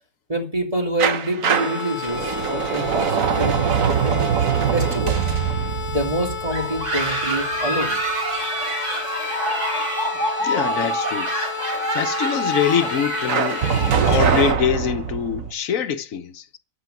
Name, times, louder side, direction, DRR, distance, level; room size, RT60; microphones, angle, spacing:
voice 1, 0.3-4.2 4.7-5.2 5.9-8.0, right 1 dB, 25° right, 3.0 m, -26 dB
sound 1, 1.0-7.8 13.3-15.5, right 7 dB, 85° right, 1.4 m, -23 dB
sound 2, 1.4-14.5, left 8 dB, 50° left, 1.4 m, -32 dB
sound 3, 6.5-14.3, right 1 dB, 65° right, 3.7 m, -26 dB
voice 2, 10.4-11.3 11.9-13.7 14.0-16.6, left 8 dB, 90° left, 1.3 m, -24 dB
14.0 x 6.2 x 9.2 m
omnidirectional pair, 1.4 m